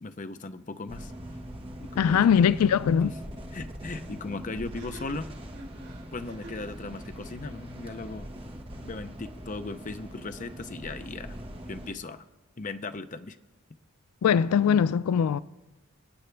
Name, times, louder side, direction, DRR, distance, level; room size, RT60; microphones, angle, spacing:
voice 1, 0.0-1.1 1.8-2.3 3.0-3.1 3.5-5.3 6.1-8.3 8.8-11.4 11.7-12.2 12.6-13.4, left 3 dB, 35° left, 0.5 m, -37 dB
sound 1, 0.9-11.9, equal, 25° right, 1.5 m, -42 dB
sound 2, 1.9-2.0 2.3-2.4 4.6-6.7, right 1 dB, 75° right, 5.1 m, -47 dB
voice 2, 2.0-3.1 14.2-15.4, left 7 dB, 90° left, 0.3 m, -21 dB
27.5 x 9.3 x 3.3 m
head